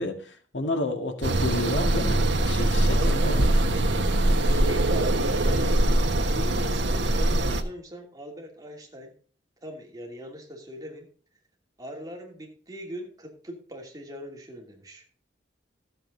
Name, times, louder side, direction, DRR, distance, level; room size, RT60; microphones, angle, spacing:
voice 1, 0.0-3.5, left 2 dB, 85° left, 5 dB, 1.9 m, -31 dB
sound 1, 1.2-7.6, right 1 dB, 85° right, 1.4 m, -22 dB
voice 2, 2.9-3.8 4.4-5.7 6.2-9.1 9.6-11.1 11.8-15.0, equal, 20° right, 0 dB, 2.8 m, -40 dB
14.0 x 7.8 x 3.9 m, 0.42 s
head